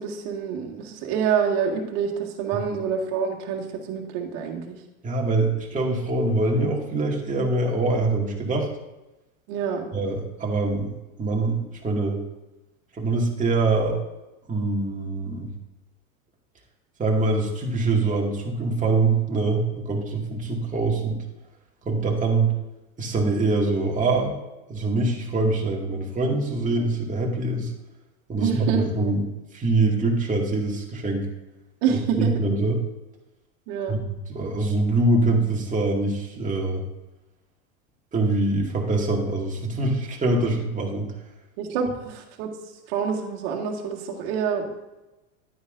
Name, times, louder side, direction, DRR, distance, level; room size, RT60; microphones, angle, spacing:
voice 1, 0.0-4.8 9.5-9.9 28.4-29.1 31.8-32.3 33.7-34.0 41.6-42.5 42.9-44.6, right 7 dB, 60° right, 0 dB, 2.0 m, -27 dB
voice 2, 5.0-8.7 9.9-10.9 11.2-12.2 12.9-14.0 14.5-15.5 17.0-21.2 21.9-22.5 23.0-24.3 24.7-27.7 28.3-29.2 29.5-31.3 31.9-32.8 33.9-36.8 38.1-41.1, right 2 dB, 20° right, -2 dB, 2.2 m, -24 dB
11.0 x 9.6 x 2.6 m, 1.0 s
hypercardioid pair, 95°, 43 cm